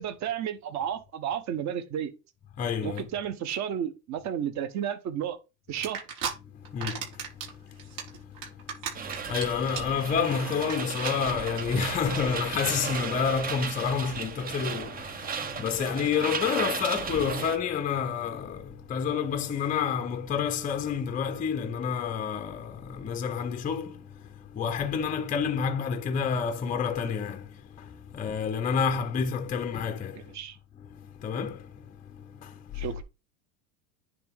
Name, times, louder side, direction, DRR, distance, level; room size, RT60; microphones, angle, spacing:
voice 1, 0.0-2.1 2.8-5.4 5.7-6.0 30.3-30.6 32.7-33.0, right 9 dB, 35° right, 1.2 m, -32 dB
voice 2, 2.6-3.1 6.5-30.3 30.8-32.8, left 7 dB, 15° left, 0.7 m, -30 dB
sound 1, 5.8-6.3 6.7-7.5 7.8-9.4 9.7-10.0 10.3-10.4 10.6-10.7 11.0-11.1 11.5-11.6, right 7 dB, 55° right, 4.9 m, -33 dB
sound 2, 8.9-17.6, right 6 dB, 20° right, 0.7 m, -35 dB
10.5 x 3.5 x 3.6 m
hypercardioid pair, 110°, 46 cm